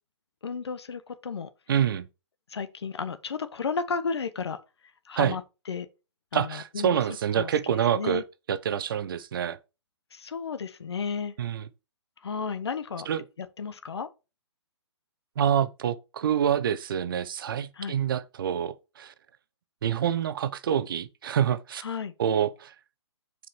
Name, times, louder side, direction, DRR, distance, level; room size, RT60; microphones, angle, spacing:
voice 1, 0.4-1.5 2.5-4.6 5.0-5.4 5.7-5.9 6.3-7.0 7.3-8.2 10.1-11.3 12.2-13.1 13.4-14.1 17.7-17.9 21.8-22.1, left 5 dB, 65° left, 1.3 m, -33 dB
voice 2, 1.7-2.1 5.2-5.4 6.3-8.2 8.5-9.6 11.4-11.6 13.1-13.2 15.4-19.1 19.8-21.8 22.2-22.7, right 9 dB, 50° right, 0.8 m, -27 dB
7.5 x 5.1 x 4.8 m
figure-of-eight pair, 130°, 15 cm